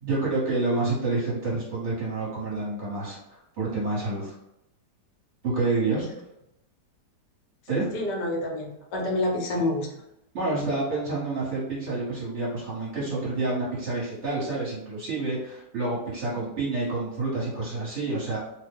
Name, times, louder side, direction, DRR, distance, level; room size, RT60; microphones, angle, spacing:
voice 1, 0.0-4.3 5.4-6.1 7.7-7.9 10.3-18.4, right 3 dB, 45° right, -7 dB, 1.2 m, -28 dB
voice 2, 7.9-9.9, left 1 dB, 80° left, 0 dB, 1.3 m, -28 dB
3.0 x 2.1 x 3.4 m, 0.85 s
omnidirectional pair, 1.8 m